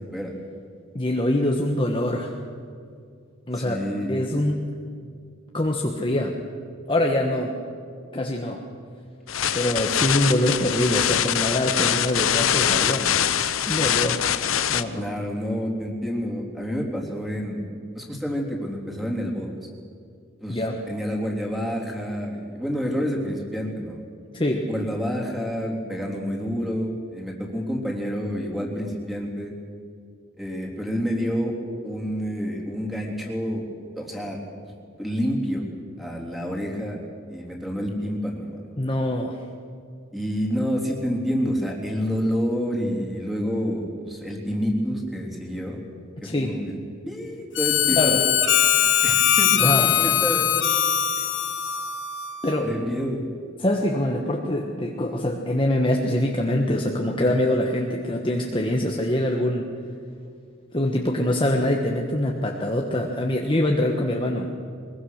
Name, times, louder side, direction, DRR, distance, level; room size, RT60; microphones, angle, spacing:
voice 1, 0.9-2.3 3.5-3.8 4.1-4.7 5.5-6.3 6.9-7.5 8.1-8.6 9.5-13.1 13.7-14.2 14.7-15.1 20.5-20.8 24.3-24.7 38.8-39.4 46.2-46.5 47.9-48.2 49.6-49.8 52.4-52.7 53.6-59.7 60.7-64.5, left 1 dB, 25° left, 0 dB, 1.3 m, -24 dB
voice 2, 3.6-4.2 14.9-17.7 17.9-19.5 20.4-24.0 24.7-29.5 30.4-31.5 31.8-33.7 34.0-34.4 35.0-35.7 36.0-37.0 37.3-38.6 40.1-45.8 46.2-46.8 47.1-48.3 49.0-50.5 52.6-53.2, equal, ahead, -1 dB, 3.5 m, -28 dB
sound 1, 9.3-14.8, left 9 dB, 85° left, 0.8 m, -23 dB
Harmonica, 47.5-52.7, left 10 dB, 65° left, 1.2 m, -21 dB
22.5 x 21.5 x 6.6 m, 2.3 s
head